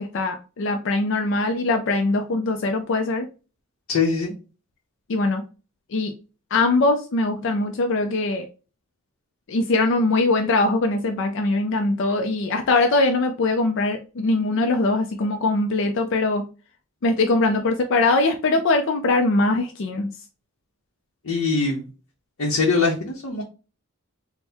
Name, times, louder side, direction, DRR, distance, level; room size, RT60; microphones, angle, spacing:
voice 1, 0.0-3.3 5.1-5.4 5.9-6.1 6.5-8.5 9.5-16.4 17.0-20.1, left 2 dB, 65° left, 4 dB, 0.4 m, -22 dB
voice 2, 3.9-4.3 21.2-21.8 22.4-23.4, left 4 dB, 85° left, -1 dB, 0.8 m, -22 dB
3.4 x 2.1 x 4.3 m, 0.34 s
head